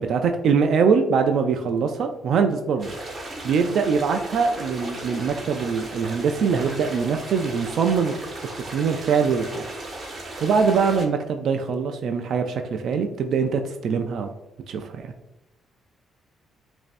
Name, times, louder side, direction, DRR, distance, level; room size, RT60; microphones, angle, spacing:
voice 1, 0.0-2.9 3.2-8.2 8.6-9.7 10.4-14.3 14.7-15.1, right 5 dB, 70° right, 6 dB, 0.3 m, -23 dB
sound 1, 2.8-11.1, right 1 dB, 40° right, 1.2 m, -36 dB
5.1 x 2.6 x 2.5 m, 0.96 s
cardioid pair, 90°, 0 cm